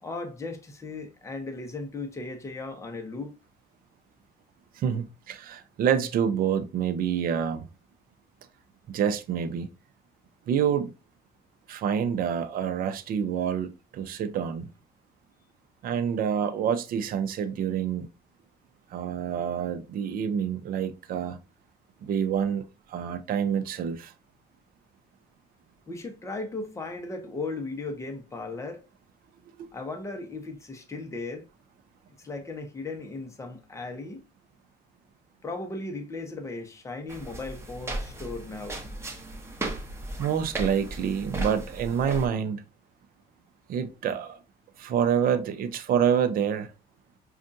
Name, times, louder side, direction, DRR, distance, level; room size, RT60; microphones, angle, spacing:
voice 1, 0.0-3.3 25.9-28.8 29.7-31.5 32.2-34.2 35.4-38.8, left 3 dB, 15° left, 0.9 m, -36 dB
voice 2, 4.8-7.7 8.9-9.7 10.5-10.9 11.7-14.7 15.8-18.1 18.9-21.4 22.0-22.6 22.9-24.1 29.6-29.7 40.2-42.6 43.7-44.4 44.8-46.7, right 8 dB, 60° right, 0.6 m, -27 dB
sound 1, 37.1-42.3, right 1 dB, 15° right, 1.0 m, -36 dB
5.3 x 2.4 x 2.6 m
cardioid pair, 110°, 17 cm